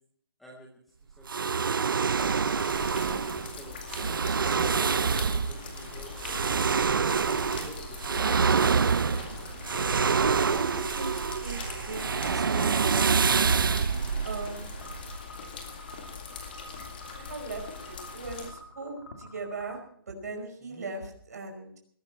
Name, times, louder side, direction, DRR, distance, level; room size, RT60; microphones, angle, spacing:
voice 1, 1.0-2.1 2.9-6.6 6.9-8.5 20.6-20.9, right 1 dB, ahead, -3 dB, 0.6 m, -48 dB
sound 1, 1.3-15.2, right 5 dB, 60° right, 0.5 m, -26 dB
sound 2, 2.2-18.5, left 5 dB, 25° left, 2.2 m, -42 dB
voice 2, 10.1-13.1 14.2-14.7 17.2-19.8 20.1-21.7, right 3 dB, 45° right, 3 dB, 5.2 m, -38 dB
sound 3, 14.8-19.8, left 1 dB, 55° left, 3.1 m, -49 dB
20.5 x 13.0 x 4.5 m, 0.63 s
hypercardioid pair, 180°, 13 cm